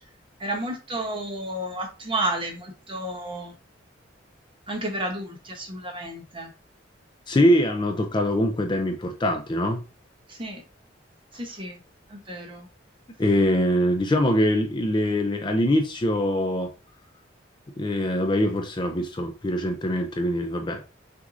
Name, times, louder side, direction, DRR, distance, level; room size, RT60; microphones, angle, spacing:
voice 1, 0.4-3.5 4.7-6.5 10.3-10.6 11.3-11.8 12.1-12.7, right 1 dB, 30° right, 0.9 m, -31 dB
voice 2, 7.3-9.8 13.2-16.7 17.8-20.9, left 1 dB, 25° left, 0.4 m, -23 dB
6.0 x 2.6 x 2.5 m
head